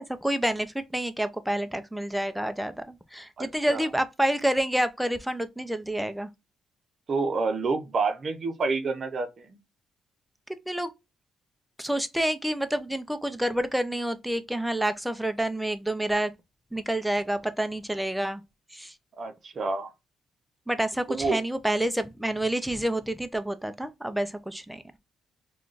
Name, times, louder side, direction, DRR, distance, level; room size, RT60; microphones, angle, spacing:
voice 1, 0.0-6.3 10.7-10.9 11.8-16.3 16.7-18.4 18.7-18.9 20.7-24.8, right 1 dB, 5° right, 0.4 m, -28 dB
voice 2, 3.4-3.9 7.1-9.5 19.2-19.9 21.1-21.4, right 4 dB, 45° right, 0.7 m, -28 dB
3.6 x 2.3 x 2.4 m
cardioid pair, 90°, 0 cm